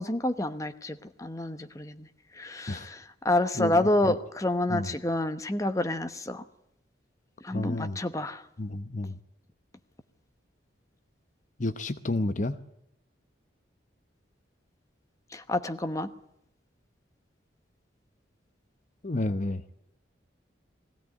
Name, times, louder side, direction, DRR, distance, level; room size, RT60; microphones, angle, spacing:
voice 1, 0.0-2.1 2.3-6.4 7.4-8.4 15.3-16.1, left 1 dB, 15° left, 8 dB, 1.0 m, -29 dB
voice 2, 7.5-8.0 8.6-9.2 11.6-12.6 19.0-19.6, left 2 dB, 40° left, 10 dB, 0.8 m, -30 dB
21.0 x 16.0 x 9.4 m, 0.79 s
head